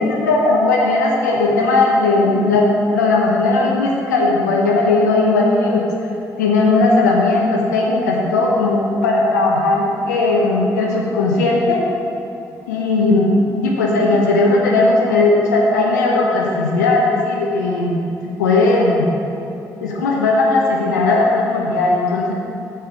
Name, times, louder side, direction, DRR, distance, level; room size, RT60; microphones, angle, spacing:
voice 1, 0.0-2.7 2.9-5.9 6.4-11.8 12.7-18.0 18.4-19.1 19.8-22.3, left 2 dB, 90° left, -2 dB, 0.8 m, -17 dB
7.5 x 5.4 x 7.0 m, 2.8 s
hypercardioid pair, 40°, 9 cm